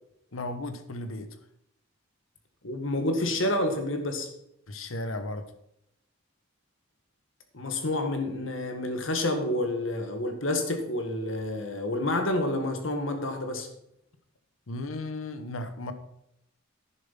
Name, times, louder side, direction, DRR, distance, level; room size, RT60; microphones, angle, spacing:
voice 1, 0.3-1.3 4.7-5.4 14.7-15.9, left 2 dB, 90° left, 10 dB, 1.1 m, -35 dB
voice 2, 2.6-4.3 7.5-13.7, left 1 dB, 75° left, 6 dB, 1.8 m, -29 dB
10.5 x 7.0 x 5.6 m, 0.80 s
head